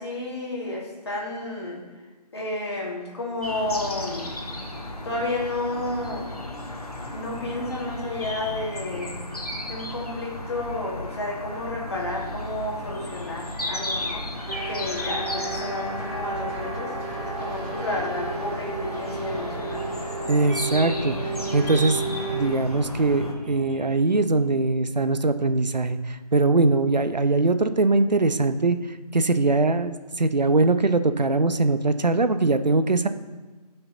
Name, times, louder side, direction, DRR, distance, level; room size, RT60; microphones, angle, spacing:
voice 1, 0.0-1.8 2.3-4.3 5.0-6.3 7.1-9.1 9.6-14.2 14.6-19.8, left 2 dB, 40° left, -2 dB, 2.3 m, -31 dB
sound 1, 3.4-23.3, left 1 dB, 65° left, 1.9 m, -34 dB
sound 2, 14.5-22.5, right 3 dB, 55° right, 2.5 m, -33 dB
sound 3, 17.0-23.9, right 2 dB, 15° right, 0.9 m, -42 dB
voice 2, 20.3-22.0 22.3-28.8 29.1-33.1, right 3 dB, 90° right, 10 dB, 0.8 m, -22 dB
12.5 x 5.9 x 4.0 m, 1.3 s
figure-of-eight pair, 165°, 21 cm